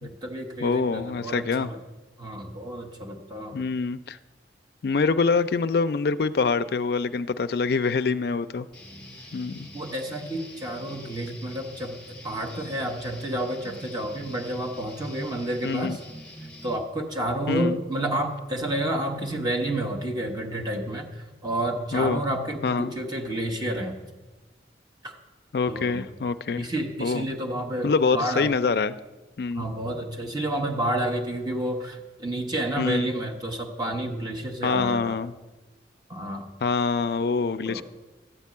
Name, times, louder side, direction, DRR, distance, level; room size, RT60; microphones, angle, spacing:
voice 1, 0.0-1.8 2.2-3.7 9.7-12.0 12.2-16.0 16.6-24.0 25.0-25.2 25.7-26.1 26.6-28.5 29.5-35.2 36.1-36.5 37.6-37.8, right 1 dB, 25° right, 2 dB, 1.1 m, -30 dB
voice 2, 0.6-1.7 3.5-4.2 4.8-8.7 9.3-9.7 15.6-16.0 17.5-17.8 21.9-22.2 22.6-22.9 25.5-26.7 27.0-27.2 27.8-28.9 29.4-29.7 32.8-33.1 34.6-35.3 36.6-37.8, left 4 dB, 60° left, 12 dB, 0.4 m, -25 dB
Guitar, 8.7-16.8, left 1 dB, 5° left, 2.3 m, -45 dB
12.5 x 4.5 x 8.4 m, 1.2 s
head